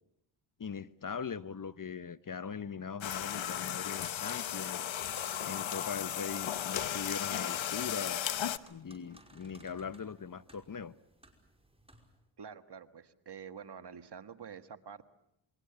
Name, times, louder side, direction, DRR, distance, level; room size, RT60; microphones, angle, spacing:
voice 1, 0.6-4.8 5.4-8.3 8.6-10.9, left 6 dB, 40° left, 1.0 m, -41 dB
sound 1, 3.0-8.6, left 10 dB, 65° left, 1.1 m, -35 dB
sound 2, 7.3-12.2, right 1 dB, 10° right, 5.5 m, -60 dB
voice 2, 12.4-15.1, right 7 dB, 50° right, 1.6 m, -47 dB
28.0 x 22.5 x 6.9 m
cardioid pair, 50°, 50 cm